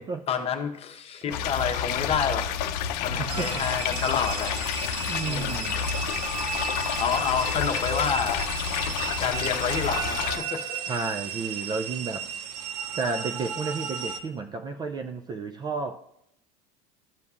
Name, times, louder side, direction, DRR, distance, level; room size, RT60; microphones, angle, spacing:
voice 1, 0.3-2.5 3.0-4.5 5.3-5.8 6.8-8.5 9.2-11.1, left 7 dB, 30° left, 5 dB, 1.0 m, -29 dB
sound 1, 1.3-10.4, left 8 dB, 75° left, 0.6 m, -30 dB
voice 2, 3.2-3.6 5.1-5.8 10.9-12.3 13.0-16.0, right 4 dB, 20° right, 7 dB, 0.3 m, -32 dB
sound 2, 3.3-14.2, right 7 dB, 80° right, 0.8 m, -34 dB
13.0 x 5.2 x 2.4 m, 0.77 s
supercardioid pair, 115°, 20 cm